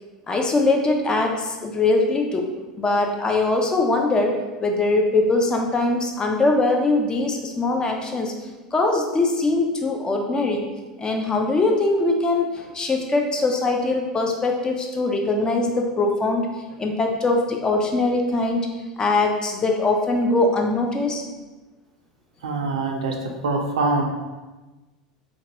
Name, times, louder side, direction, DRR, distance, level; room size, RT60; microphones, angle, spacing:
voice 1, 0.3-8.3 8.7-10.7 11.0-18.7 19.0-21.2, left 2 dB, 20° left, 2 dB, 0.4 m, -22 dB
voice 2, 22.4-23.1 23.4-24.0, right 3 dB, 80° right, 2 dB, 0.4 m, -23 dB
2.8 x 2.2 x 2.8 m, 1.2 s
hypercardioid pair, 85°, 4 cm